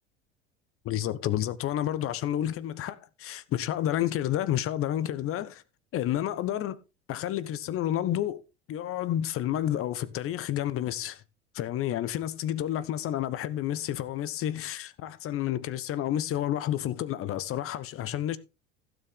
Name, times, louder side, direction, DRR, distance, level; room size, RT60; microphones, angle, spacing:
voice 1, 0.8-5.6 5.9-6.8 7.1-8.4 8.7-11.2 11.5-18.4, left 12 dB, 40° left, 1.1 m, -30 dB
16.0 x 7.2 x 3.7 m
figure-of-eight pair, 70°, 33 cm